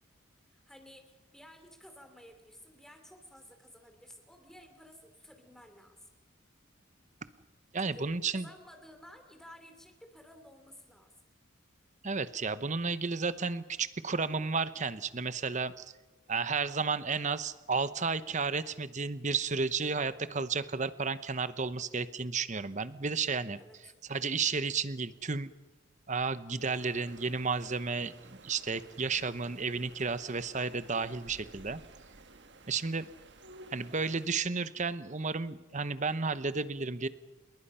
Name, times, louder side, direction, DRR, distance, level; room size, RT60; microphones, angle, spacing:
voice 1, 0.5-6.1 7.8-8.1 8.3-11.1 23.6-23.9, equal, ahead, 6 dB, 2.9 m, -54 dB
voice 2, 7.7-8.5 12.0-15.8 16.3-23.6 24.1-25.5 26.1-31.8 32.7-33.1 33.7-37.1, right 4 dB, 35° right, 14 dB, 0.9 m, -32 dB
sound 1, 26.6-34.3, right 2 dB, 55° right, 1.5 m, -54 dB
28.5 x 21.5 x 5.7 m, 1.2 s
head